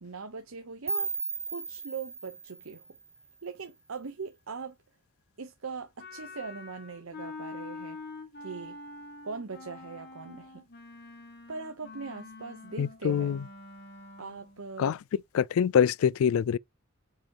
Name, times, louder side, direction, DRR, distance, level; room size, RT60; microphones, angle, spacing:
voice 1, 0.0-1.1 1.5-2.8 3.4-4.8 5.4-8.0 8.4-8.8 9.2-10.6 11.5-13.4 14.2-15.0, right 5 dB, 75° right, 0.9 m, -40 dB
sound 1, 0.9-3.8, right 4 dB, 10° right, 1.0 m, -37 dB
Wind instrument woodwind instrument, 6.0-14.6, left 3 dB, 50° left, 1.7 m, -45 dB
voice 2, 12.8-13.4 14.8-15.0 15.3-16.6, left 8 dB, 75° left, 0.3 m, -25 dB
7.3 x 5.0 x 2.9 m
head